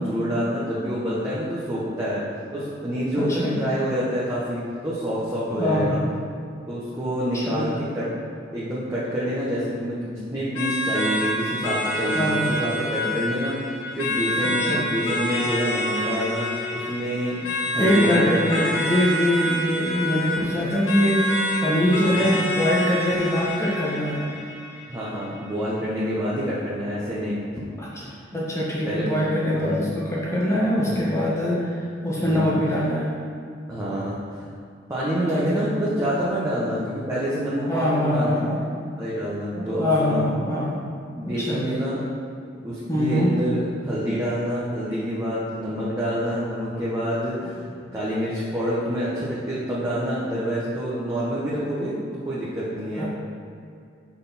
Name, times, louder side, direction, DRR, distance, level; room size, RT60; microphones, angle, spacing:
voice 1, 0.0-2.2 2.5-6.0 6.7-8.1 8.5-18.6 22.1-22.2 24.9-27.4 28.3-28.4 28.8-29.9 30.7-31.2 32.1-32.5 33.7-34.5 34.9-38.6 39.0-40.2 41.1-42.0 42.6-52.0 52.2-53.0, equal, 15° right, -9 dB, 1.1 m, -27 dB
voice 2, 3.2-3.6 5.6-6.1 7.3-7.8 12.1-12.5 14.4-14.8 17.8-24.2 27.8-27.9 28.3-33.1 35.3-35.7 37.6-38.6 39.5-40.8 41.2-41.6 42.9-43.3 53.0-53.1, equal, 15° left, -6 dB, 1.6 m, -23 dB
sound 1, 10.6-25.5, left 1 dB, 80° left, 1.0 m, -28 dB
6.4 x 5.9 x 4.2 m, 2.4 s
head